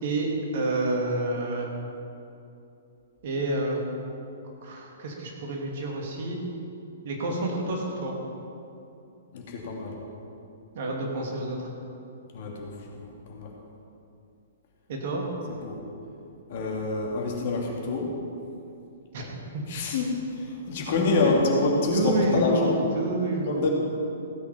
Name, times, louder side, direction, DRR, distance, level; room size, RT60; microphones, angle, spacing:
voice 1, 0.0-1.7 3.2-3.8 4.6-6.4 7.0-8.2 10.7-11.7 14.9-15.2 19.1-19.3 19.5-19.6 21.2-21.3 21.9-23.6, right 2 dB, 45° right, -1 dB, 2.5 m, -28 dB
voice 2, 9.3-10.0 12.3-13.5 15.6-15.8 16.5-18.1 19.7-22.8 23.5-23.7, left 3 dB, 45° left, -1 dB, 2.5 m, -27 dB
15.5 x 8.3 x 5.9 m, 2.7 s
figure-of-eight pair, 115°, 0 cm